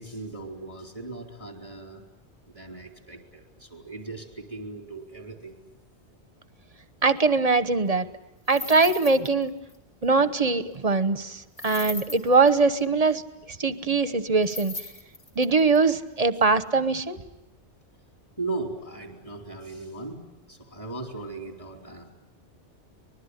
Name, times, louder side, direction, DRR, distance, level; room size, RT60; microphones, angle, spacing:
voice 1, 0.0-2.0 2.5-5.6 18.4-20.2 20.5-22.1, right 3 dB, 30° left, 3 dB, 4.2 m, -37 dB
voice 2, 7.0-8.1 8.5-9.5 10.0-13.2 13.6-14.7 15.4-17.2, right 4 dB, 35° right, 12 dB, 1.1 m, -22 dB
sound 1, 8.5-9.4 9.7-9.8 11.6-12.5 14.4-15.8, left 3 dB, 55° left, 3.7 m, -38 dB
25.0 x 20.5 x 9.9 m, 0.95 s
omnidirectional pair, 1.2 m